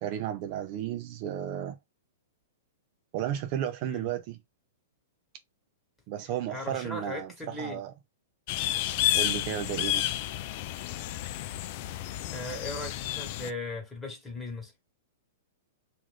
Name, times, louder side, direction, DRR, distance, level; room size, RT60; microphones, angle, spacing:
voice 1, 0.0-1.8 3.1-4.4 6.1-7.9 9.1-10.1, right 10 dB, 45° right, 0.4 m, -33 dB
voice 2, 6.5-7.8 12.3-14.7, left 2 dB, 10° left, 1.3 m, -38 dB
sound 1, 8.5-13.5, left 13 dB, 50° left, 0.3 m, -31 dB
2.5 x 2.4 x 3.3 m
hypercardioid pair, 135°, 0 cm